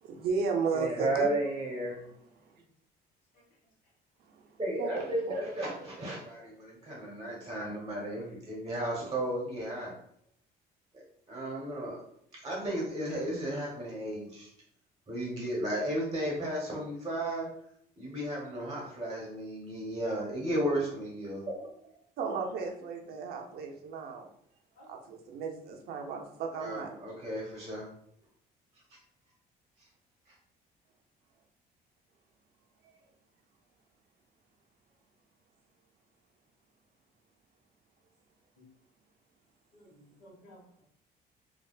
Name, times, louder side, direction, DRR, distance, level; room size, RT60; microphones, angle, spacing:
voice 1, 0.0-1.3 4.3-4.5 4.8-5.4 22.2-24.3 24.9-26.9 32.8-32.9, right 5 dB, 65° right, 2 dB, 0.6 m, -34 dB
voice 2, 0.7-2.0 4.6-9.9 11.3-12.0 12.4-14.5 15.1-17.5 18.0-21.7 26.6-27.8, right 1 dB, 25° right, -4 dB, 1.0 m, -34 dB
voice 3, 39.7-40.8, equal, 55° left, -2 dB, 1.2 m, -56 dB
3.3 x 2.3 x 2.3 m, 0.68 s
cardioid pair, 110°, 17 cm